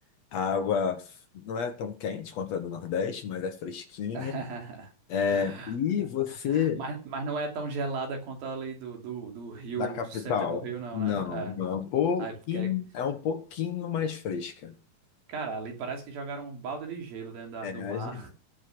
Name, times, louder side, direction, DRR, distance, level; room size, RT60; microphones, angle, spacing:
voice 1, 0.3-4.4 5.1-6.8 9.8-10.6 10.9-14.8 17.6-18.3, left 7 dB, 60° left, 1.9 m, -30 dB
voice 2, 4.1-4.9 5.3-6.1 6.5-11.5 12.2-12.7 15.3-18.3, right 4 dB, 85° right, 4.7 m, -36 dB
14.5 x 7.3 x 6.0 m
omnidirectional pair, 4.0 m